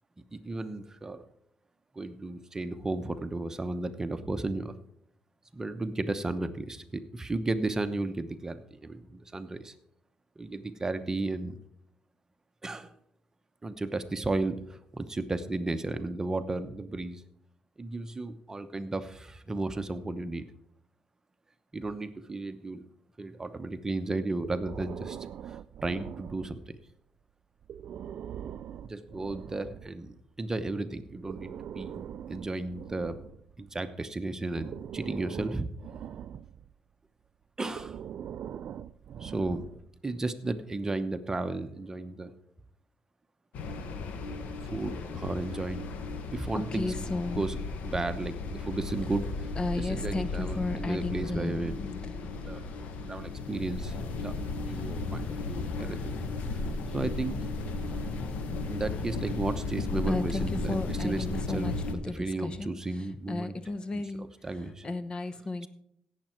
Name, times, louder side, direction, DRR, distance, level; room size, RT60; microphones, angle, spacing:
voice 1, 0.3-1.2 1.9-4.7 5.5-9.7 10.4-11.5 12.6-12.9 13.6-17.2 17.8-20.5 21.7-22.8 23.2-25.2 25.5-26.6 28.9-33.2 33.6-35.7 37.6-38.0 39.2-39.6 40.0-42.3 44.6-45.9 46.3-49.5 49.7-51.9 52.5-52.6 53.1-56.0 56.4-56.6 56.9-57.4 58.7-63.5 63.9-64.8, right 2 dB, 20° right, 10 dB, 0.9 m, -34 dB
Breathing, 24.4-26.8 27.6-30.0 31.1-33.9 34.5-36.7 37.7-40.0, right 9 dB, 65° right, 0.4 m, -42 dB
sound 1, 43.5-61.9, left 3 dB, 80° left, 1.3 m, -35 dB
voice 2, 46.5-47.5 49.6-51.6 52.0-52.2 60.1-65.7, left 2 dB, 35° left, 12 dB, 0.9 m, -35 dB
17.0 x 7.5 x 4.5 m, 0.70 s
cardioid pair, 90°, 3 cm